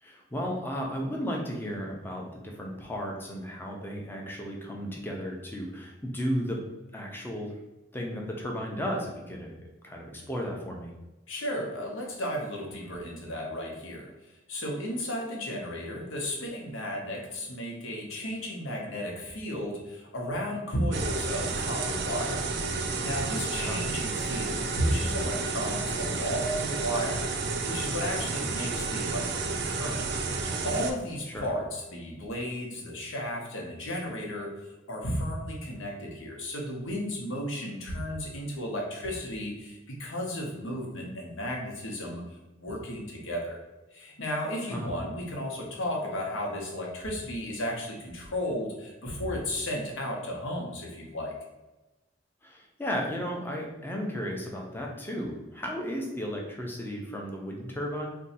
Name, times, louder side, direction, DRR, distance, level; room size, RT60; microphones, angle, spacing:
voice 1, 0.0-6.6 6.9-7.5 7.9-9.5 9.8-10.9 23.6-23.8 31.3-31.5 44.7-44.9 52.4-58.1, equal, 10° left, 0 dB, 0.5 m, -34 dB
voice 2, 11.3-14.1 14.5-22.5 23.0-30.1 30.6-34.5 34.9-42.2 42.6-43.6 43.9-51.3, equal, 85° left, 0 dB, 0.9 m, -34 dB
sound 1, 20.9-30.9, right 4 dB, 55° right, 0.4 m, -31 dB
2.6 x 2.3 x 4.0 m, 1.1 s
head